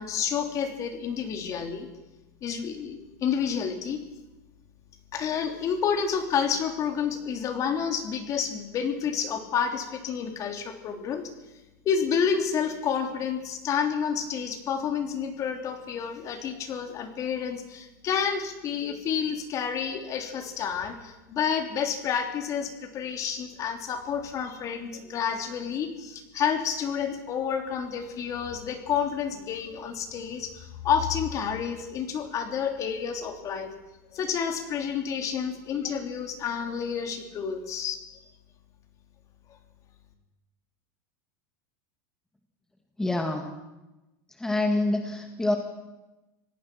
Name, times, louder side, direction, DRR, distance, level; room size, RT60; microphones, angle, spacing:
voice 1, 0.0-1.9 2.4-4.0 5.1-11.2 11.8-33.7 34.1-38.0, left 7 dB, 35° left, 5 dB, 3.2 m, -29 dB
voice 2, 43.0-43.5 44.4-45.6, left 2 dB, 5° left, 4 dB, 1.9 m, -26 dB
26.0 x 18.0 x 6.1 m, 1.0 s
supercardioid pair, 135°, 9 cm